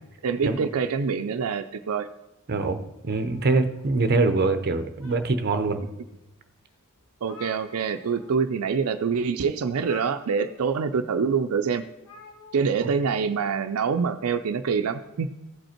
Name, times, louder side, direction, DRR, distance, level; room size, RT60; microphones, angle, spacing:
voice 1, 0.2-2.1 7.2-11.8 12.5-15.3, right 5 dB, 80° right, 8 dB, 0.4 m, -25 dB
voice 2, 2.5-5.8 12.8-12.9, right 3 dB, 45° right, 9 dB, 0.7 m, -24 dB
sound 1, 3.1-4.3 4.7-5.6 6.2-6.3 6.7-6.8 7.0-8.3 8.6-8.8 9.7-10.8 12.0-12.8, left 5 dB, 70° left, 1.5 m, -48 dB
15.0 x 5.3 x 4.4 m, 0.95 s
head